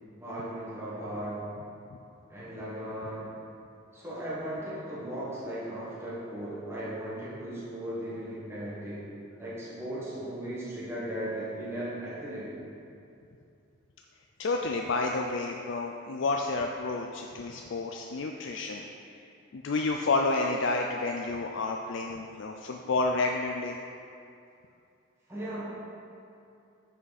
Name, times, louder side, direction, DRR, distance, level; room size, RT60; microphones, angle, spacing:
voice 1, 0.2-1.5 2.3-3.3 3.9-9.0 9.4-12.5 25.3-25.6, right 1 dB, 15° right, -9 dB, 1.5 m, -37 dB
voice 2, 14.4-18.8 19.5-23.8, left 3 dB, 60° left, 2 dB, 0.4 m, -30 dB
9.4 x 5.8 x 4.1 m, 2.6 s
head